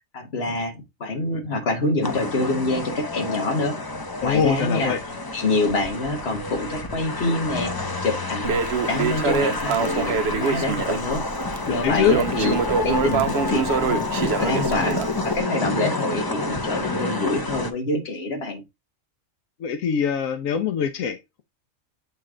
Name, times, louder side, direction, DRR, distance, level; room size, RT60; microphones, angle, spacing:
voice 1, 0.1-3.8 4.2-5.0 5.3-7.7 8.0-11.2 11.7-12.6 12.8-18.6, left 2 dB, 50° left, 1.7 m, -26 dB
sound 1, 2.0-17.7, left 3 dB, 30° left, 0.5 m, -29 dB
voice 2, 4.2-5.0 11.7-12.2 19.6-21.4, left 7 dB, 85° left, 1.1 m, -23 dB
Crackle, 8.4-15.4, right 5 dB, 60° right, 0.8 m, -25 dB
7.9 x 3.2 x 3.7 m
omnidirectional pair, 1.4 m